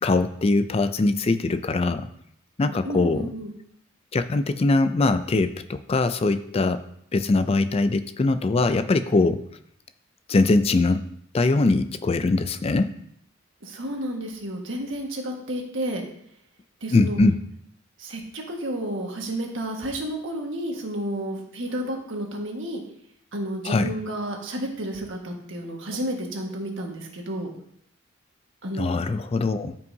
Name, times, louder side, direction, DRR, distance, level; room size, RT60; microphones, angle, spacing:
voice 1, 0.0-2.1 2.6-3.3 4.1-6.8 7.1-9.4 10.3-11.0 11.3-12.9 16.9-17.4 23.6-23.9 28.8-29.8, left 3 dB, 30° left, 12 dB, 0.4 m, -22 dB
voice 2, 2.8-3.5 13.6-16.0 16.8-17.2 18.0-22.8 23.3-27.5 28.6-28.9, right 1 dB, 65° right, 1 dB, 1.6 m, -31 dB
13.5 x 5.5 x 2.7 m, 0.71 s
head